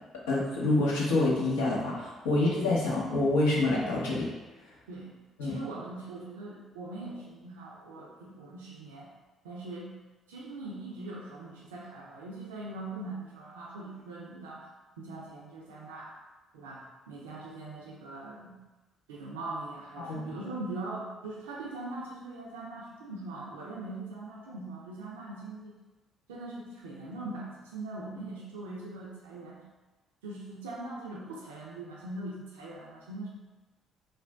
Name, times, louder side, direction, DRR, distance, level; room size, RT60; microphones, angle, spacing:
voice 1, 0.3-4.3 5.4-5.6 20.0-20.2, left 2 dB, 85° left, -5 dB, 0.6 m, -27 dB
voice 2, 5.4-9.1 9.4-9.9 10.3-14.7 15.0-16.1 16.5-18.5 19.1-25.8 26.3-29.6 30.2-33.3, right 2 dB, 90° right, -4 dB, 0.4 m, -41 dB
2.5 x 2.2 x 3.3 m, 1.2 s
hypercardioid pair, 50°, 0 cm